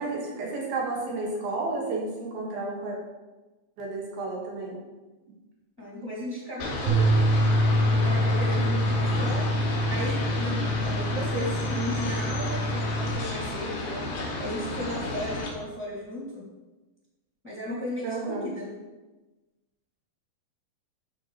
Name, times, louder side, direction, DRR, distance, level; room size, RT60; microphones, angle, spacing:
voice 1, 0.0-3.0 3.8-4.8 18.0-18.5, right 3 dB, 90° right, -3 dB, 3.5 m, -31 dB
voice 2, 5.8-7.1 7.9-16.4 17.4-18.8, left 1 dB, ahead, -7 dB, 1.6 m, -35 dB
sound 1, 6.6-15.5, left 2 dB, 90° left, 3.5 m, -32 dB
sound 2, 6.9-13.1, equal, 60° right, 1.6 m, -25 dB
13.0 x 5.1 x 3.2 m, 1.2 s
omnidirectional pair, 4.1 m